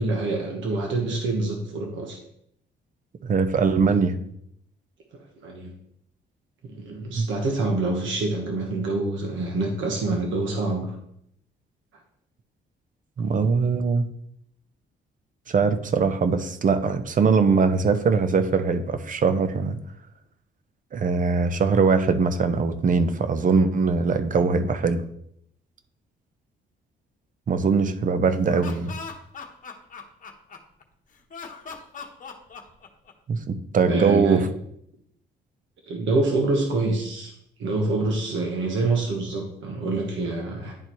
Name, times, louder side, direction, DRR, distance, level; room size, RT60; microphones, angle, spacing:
voice 1, 0.0-2.2 5.4-5.7 6.6-10.9 33.8-34.4 35.9-37.3 37.6-40.7, right 2 dB, 75° right, 1 dB, 1.3 m, -26 dB
voice 2, 3.2-4.2 7.1-7.3 13.2-14.1 15.5-19.8 20.9-25.0 27.5-28.9 33.3-34.5, right 5 dB, 40° right, 10 dB, 0.7 m, -21 dB
Laughter, 28.3-30.8 31.3-33.3, left 5 dB, 40° left, 1.1 m, -40 dB
10.5 x 4.2 x 3.1 m, 0.72 s
cardioid pair, 90°, 20 cm